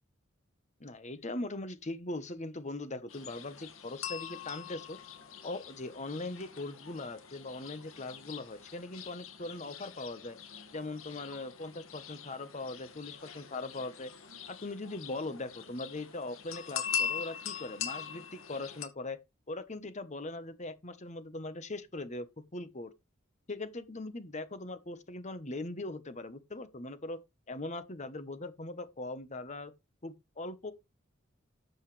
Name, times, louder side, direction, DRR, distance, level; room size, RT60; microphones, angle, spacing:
voice 1, 0.8-5.0 5.4-10.4 10.7-14.1 14.5-19.2 19.5-22.9 23.5-27.2 27.5-29.7 30.0-30.7, left 2 dB, 35° left, 1.2 m, -40 dB
sound 1, 3.1-18.9, left 7 dB, 90° left, 2.1 m, -42 dB
13.0 x 8.0 x 3.4 m
head